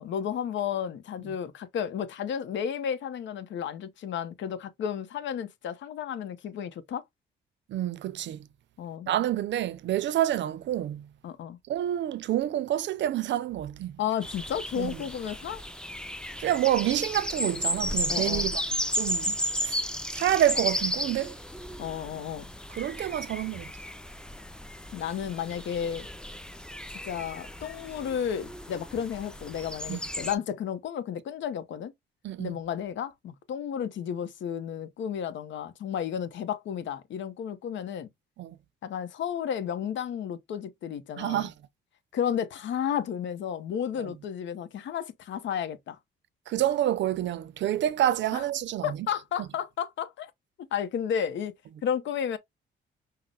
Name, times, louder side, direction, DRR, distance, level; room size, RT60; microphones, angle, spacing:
voice 1, 0.0-7.0 8.8-9.1 11.2-11.6 14.0-15.6 18.1-18.5 21.8-22.5 24.9-26.1 27.1-31.9 32.4-38.1 38.8-41.5 42.1-46.0 48.3-48.4 48.8-50.3 50.7-51.5 51.8-52.4, left 8 dB, 70° left, 0.8 m, -32 dB
voice 2, 7.7-8.5 9.1-11.1 11.7-14.0 14.8-15.0 16.4-18.6 18.9-19.8 20.1-21.4 22.7-23.7 29.9-30.0 32.2-32.6 38.4-38.6 41.2-41.5 44.0-44.1 46.5-49.0 49.4-49.5, right 12 dB, 65° right, 0.6 m, -28 dB
sound 1, 14.2-30.4, equal, 5° left, 0.5 m, -34 dB
5.8 x 2.1 x 3.8 m
cardioid pair, 90°, 20 cm